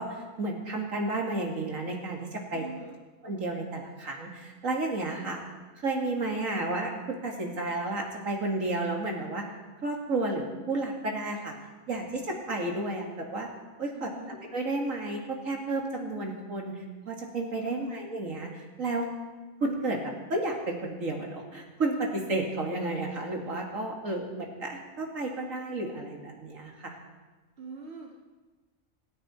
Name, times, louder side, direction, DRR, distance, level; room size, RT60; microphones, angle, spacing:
voice 1, 0.0-2.6 3.2-5.4 5.8-9.4 9.8-11.5 11.9-13.5 13.8-19.1 19.6-26.9, right 2 dB, 60° right, 1 dB, 2.5 m, -32 dB
voice 2, 2.5-3.0 13.9-14.4 17.6-18.0 27.6-28.2, right 3 dB, 45° right, -1 dB, 1.9 m, -43 dB
26.5 x 10.5 x 4.3 m, 1.3 s
omnidirectional pair, 1.5 m